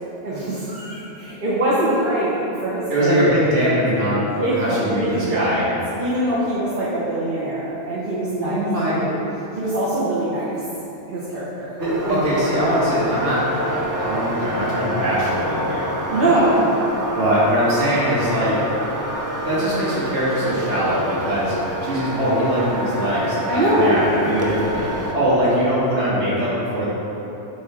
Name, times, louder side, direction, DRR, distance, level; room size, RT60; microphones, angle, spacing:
voice 1, 0.2-3.4 4.4-5.6 6.0-8.6 8.9-9.2 9.5-10.6 11.1-11.7 12.0-12.2 16.1-16.6 23.5-24.1, right 1 dB, 50° right, -9 dB, 1.3 m, -23 dB
voice 2, 2.9-5.6 8.4-9.1 11.8-16.5 17.2-18.6 19.3-21.5 21.8-24.9 25.1-26.9, equal, 85° right, -9 dB, 1.8 m, -22 dB
sound 1, 11.8-25.1, right 1 dB, 25° right, 0.5 m, -28 dB
8.5 x 4.0 x 4.2 m, 3.0 s
omnidirectional pair, 1.2 m